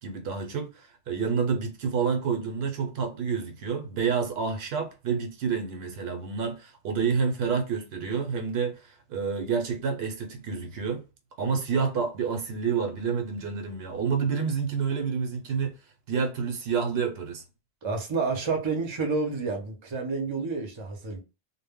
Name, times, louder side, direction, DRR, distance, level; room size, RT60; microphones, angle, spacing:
voice 1, 0.0-11.0 11.4-15.7 16.1-17.4, right 6 dB, 70° right, 0.8 m, -29 dB
voice 2, 17.8-21.2, right 4 dB, 35° right, 0.5 m, -29 dB
2.1 x 2.0 x 3.4 m
omnidirectional pair, 1.1 m